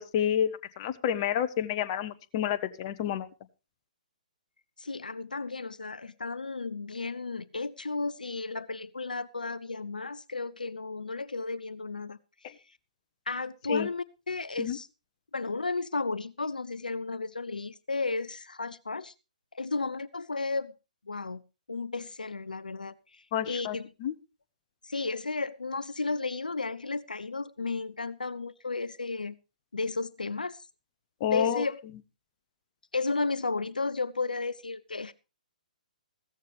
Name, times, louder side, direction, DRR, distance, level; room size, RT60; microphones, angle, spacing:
voice 1, 0.0-3.3 12.4-12.5 13.7-13.9 14.6-14.8 23.3-24.1 31.2-31.6, left 9 dB, 35° left, 12 dB, 0.9 m, -29 dB
voice 2, 4.8-12.8 13.3-14.9 15.3-19.1 19.5-20.7 21.1-21.4 21.7-23.9 24.8-29.4 29.7-30.7 31.3-31.8 32.9-35.1, left 3 dB, 75° left, 17 dB, 0.6 m, -33 dB
15.5 x 14.0 x 3.4 m, 0.30 s
figure-of-eight pair, 125°, 5 cm